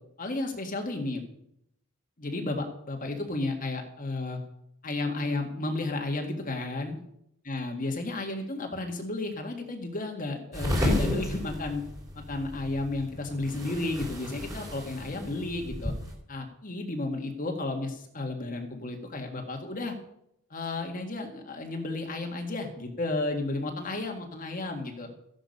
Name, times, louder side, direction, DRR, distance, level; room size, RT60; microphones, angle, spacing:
voice 1, 0.2-1.2 2.2-4.4 4.8-7.0 7.5-11.8 12.2-15.9 16.3-19.9 20.5-25.1, left 2 dB, 40° left, 2 dB, 1.8 m, -33 dB
Dress in chair, 10.5-16.1, left 1 dB, 15° right, 3.1 m, -32 dB
14.5 x 11.0 x 5.4 m, 0.75 s
head